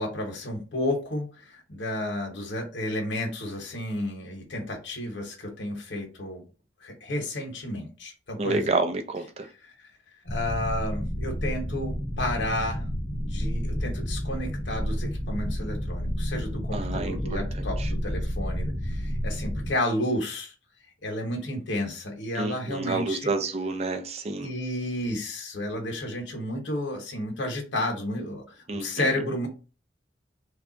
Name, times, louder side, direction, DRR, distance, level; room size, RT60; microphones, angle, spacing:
voice 1, 0.0-6.4 6.8-8.7 9.6-9.7 10.2-12.8 13.1-20.5 21.0-23.3 24.4-29.5, left 1 dB, 75° left, 1.0 m, -32 dB
voice 2, 8.4-9.5 16.7-17.4 17.8-17.9 22.3-24.5 28.7-29.1, right 3 dB, 35° right, 0.4 m, -29 dB
sound 1, 10.3-19.7, equal, 15° left, 0.8 m, -30 dB
3.2 x 2.3 x 3.8 m
head